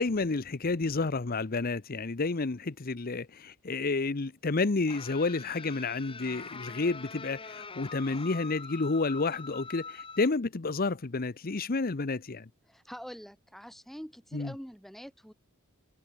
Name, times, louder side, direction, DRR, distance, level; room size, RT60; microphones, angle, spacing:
voice 1, 0.0-12.5 14.3-14.5, left 3 dB, 45° left, 0.8 m, -30 dB
sound 1, 4.9-10.3, left 4 dB, 25° left, 2.3 m, -44 dB
voice 2, 12.7-15.3, equal, ahead, 4.7 m, -45 dB
head